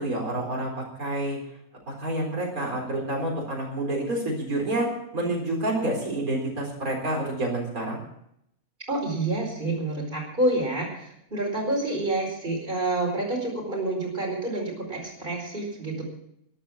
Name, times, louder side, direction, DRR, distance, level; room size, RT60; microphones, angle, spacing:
voice 1, 0.0-1.4 1.9-8.0, right 1 dB, 90° right, -1 dB, 4.6 m, -28 dB
voice 2, 8.9-16.0, right 2 dB, 35° right, -1 dB, 5.0 m, -28 dB
13.0 x 11.5 x 7.2 m, 0.75 s
omnidirectional pair, 1.5 m